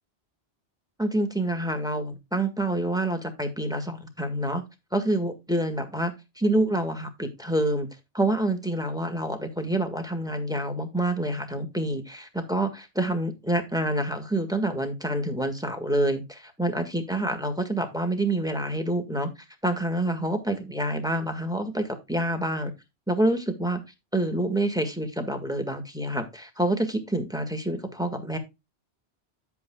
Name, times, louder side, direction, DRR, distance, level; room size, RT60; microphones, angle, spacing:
voice 1, 1.0-4.6 4.9-6.1 6.4-7.9 8.1-19.3 19.6-22.7 23.1-23.8 24.1-28.4, right 1 dB, 5° right, 5 dB, 1.7 m, -27 dB
9.3 x 8.3 x 2.3 m, 0.23 s
omnidirectional pair, 1.1 m